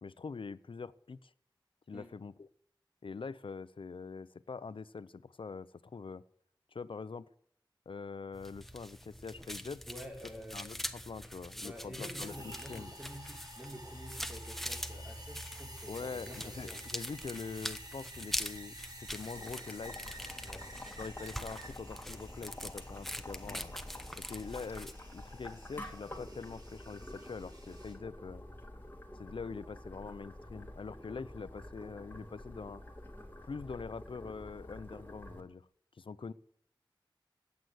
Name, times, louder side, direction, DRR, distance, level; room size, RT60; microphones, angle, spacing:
voice 1, 0.0-1.3 1.9-2.5 3.0-6.2 6.7-7.3 7.9-9.8 10.5-12.9 15.9-18.7 19.1-20.0 21.0-23.7 24.2-28.4 29.2-32.8 33.5-35.7 36.0-36.3, left 4 dB, 85° left, 16 dB, 0.7 m, -44 dB
sound 1, 8.3-24.9, equal, 5° left, 1.2 m, -44 dB
voice 2, 9.9-10.7 11.6-16.8 20.4-20.7 23.4-23.6, equal, 10° right, 1 dB, 4.4 m, -48 dB
sound 2, 12.2-27.9, right 1 dB, 45° right, 6.2 m, -52 dB
Boiling, 19.3-35.4, left 1 dB, 25° left, 3.0 m, -48 dB
16.0 x 9.5 x 7.9 m, 0.69 s
wide cardioid pair, 75°, 9 cm